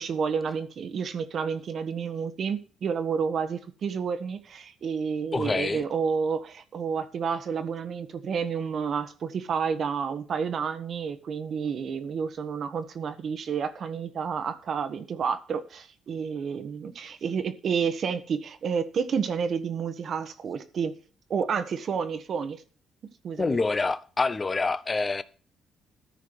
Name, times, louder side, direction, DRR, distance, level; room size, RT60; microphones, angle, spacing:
voice 1, 0.0-21.0 21.3-22.6 23.2-23.6, right 6 dB, 55° right, 1.3 m, -30 dB
voice 2, 5.3-5.8 23.4-25.2, left 3 dB, 25° left, 0.8 m, -26 dB
13.5 x 4.9 x 6.2 m
cardioid pair, 90°, 0 cm